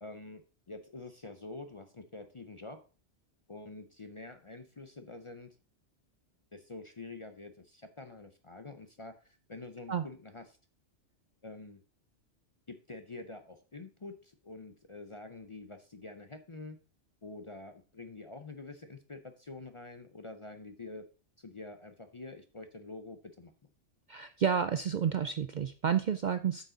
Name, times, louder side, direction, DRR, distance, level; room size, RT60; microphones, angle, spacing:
voice 1, 0.0-0.4 0.7-2.8 3.5-5.6 6.5-10.4 11.4-11.8 12.7-16.8 17.2-21.1 21.4-23.5, left 3 dB, 35° left, 8 dB, 0.5 m, -47 dB
voice 2, 24.1-26.7, right 8 dB, 60° right, 9 dB, 0.5 m, -30 dB
8.1 x 6.7 x 3.9 m, 0.36 s
omnidirectional pair, 1.2 m